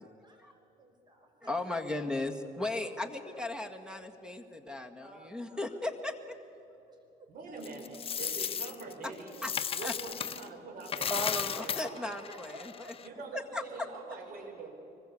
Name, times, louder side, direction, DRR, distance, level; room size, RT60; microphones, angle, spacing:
voice 1, 0.0-1.5 5.0-5.9 6.9-7.6 8.9-9.6 12.0-13.0, equal, 25° right, 3 dB, 5.9 m, -54 dB
voice 2, 1.4-6.4 9.4-9.5 9.8-9.9 11.1-12.7 13.3-13.6, left 2 dB, 5° right, 7 dB, 1.8 m, -36 dB
voice 3, 7.3-9.4 9.8-12.1 13.0-14.8, right 4 dB, 55° right, 2 dB, 5.8 m, -44 dB
Coin (dropping), 7.6-10.5 10.8-13.1, left 7 dB, 35° left, 0.9 m, -35 dB
24.5 x 21.0 x 8.5 m, 2.9 s
cardioid pair, 110°, 17 cm